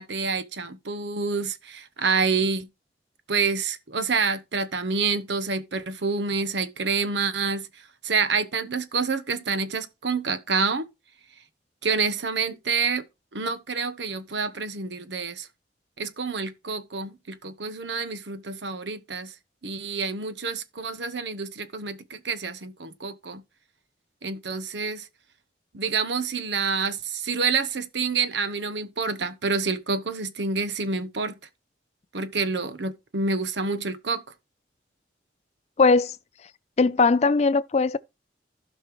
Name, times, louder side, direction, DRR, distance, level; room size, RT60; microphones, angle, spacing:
voice 1, 0.0-2.7 3.3-7.7 8.0-10.9 11.8-13.0 13.3-15.5 16.0-19.3 19.6-23.4 24.2-25.1 25.7-31.4 32.1-34.2, right 4 dB, 80° right, 1.0 m, -28 dB
voice 2, 35.8-36.2 36.8-38.0, left 4 dB, 35° left, 0.4 m, -19 dB
15.5 x 5.4 x 3.1 m
head